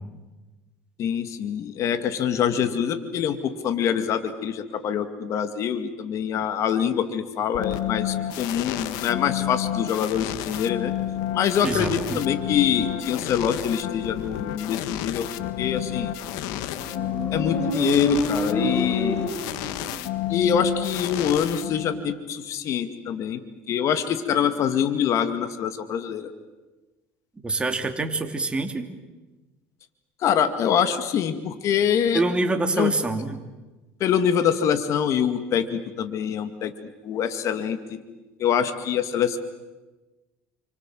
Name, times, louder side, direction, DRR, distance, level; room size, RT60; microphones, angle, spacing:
voice 1, 1.0-10.9 11.3-15.3 15.6-16.1 17.3-19.3 20.3-23.4 23.7-26.3 30.2-32.2 32.8-32.9 34.0-36.7 37.0-38.0 38.4-39.4, left 8 dB, 55° left, 10 dB, 2.1 m, -25 dB
sound 1, 7.5-22.2, left 12 dB, 75° left, 1.6 m, -30 dB
voice 2, 11.6-12.2 27.4-28.9 32.1-33.4, right 2 dB, 15° right, 4 dB, 3.1 m, -26 dB
Motorcycle, 16.5-20.2, right 1 dB, 25° left, 7.5 m, -29 dB
29.0 x 25.5 x 7.7 m, 1.2 s
supercardioid pair, 105°, 6 cm